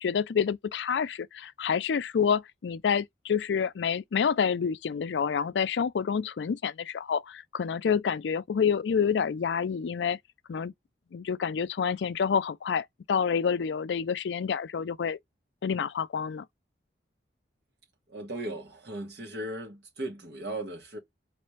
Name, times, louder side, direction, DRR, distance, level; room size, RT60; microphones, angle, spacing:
voice 1, 0.0-10.2 10.5-10.7 11.1-15.2 15.6-16.4, left 6 dB, 80° left, 0.4 m, -28 dB
voice 2, 18.1-21.0, right 1 dB, 70° right, 1.9 m, -37 dB
4.2 x 3.2 x 3.1 m
head